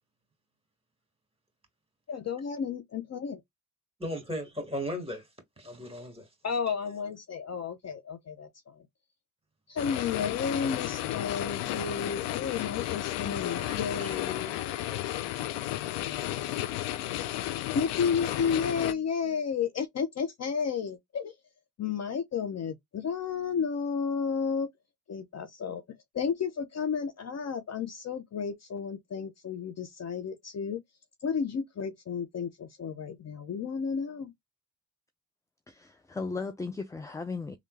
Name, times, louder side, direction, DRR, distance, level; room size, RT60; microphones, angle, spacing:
voice 1, 2.1-3.4 6.4-8.8 9.7-14.6 17.7-21.3 21.8-24.7 25.1-25.8 26.1-30.8 31.2-34.3, left 6 dB, 40° left, 0.6 m, -32 dB
voice 2, 4.0-5.3 5.6-6.3 12.5-12.7 13.6-14.2, equal, 15° right, 2.0 m, -37 dB
sound 1, 9.8-18.9, left 14 dB, 80° left, 0.5 m, -33 dB
voice 3, 35.7-37.6, left 4 dB, 10° left, 0.3 m, -36 dB
3.2 x 2.4 x 3.2 m
supercardioid pair, 60°, 42 cm